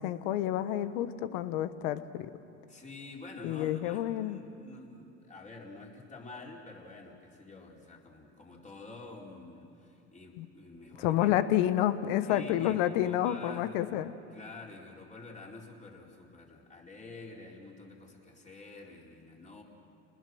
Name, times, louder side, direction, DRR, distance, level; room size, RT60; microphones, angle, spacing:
voice 1, 0.0-2.3 3.4-4.4 10.4-10.5 11.0-14.1, left 12 dB, 65° left, 13 dB, 1.2 m, -29 dB
voice 2, 2.7-11.4 12.2-13.8 14.3-19.6, left 3 dB, 20° left, -2 dB, 4.5 m, -48 dB
30.0 x 20.0 x 6.3 m, 2.8 s
hypercardioid pair, 95°, 35 cm